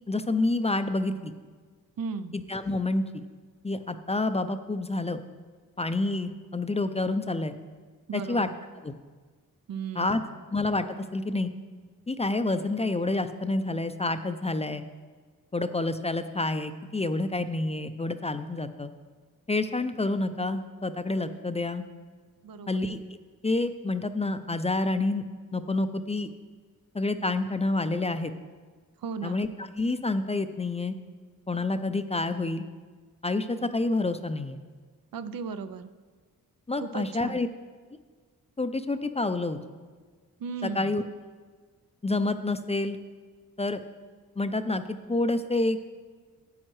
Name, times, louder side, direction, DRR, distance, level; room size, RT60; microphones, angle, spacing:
voice 1, 0.1-1.3 2.3-3.2 3.6-5.2 5.8-7.5 8.1-8.5 8.8-8.9 10.0-10.2 10.5-11.5 12.1-14.9 15.5-18.9 19.5-21.8 22.7-23.0 23.4-25.2 25.5-26.3 26.9-28.3 29.2-30.9 31.5-32.6 33.2-34.6 36.7-37.5 38.6-39.6 40.6-41.0 42.0-43.0 43.6-43.8 44.4-45.8, left 2 dB, 20° left, 10 dB, 0.4 m, -28 dB
voice 2, 2.0-2.4 8.1-8.5 9.7-10.4 22.4-22.8 29.0-29.4 35.1-35.9 36.8-37.4 40.4-40.9, right 5 dB, 75° right, 11 dB, 0.5 m, -36 dB
12.0 x 8.8 x 3.1 m, 1.5 s
wide cardioid pair, 80°, 35 cm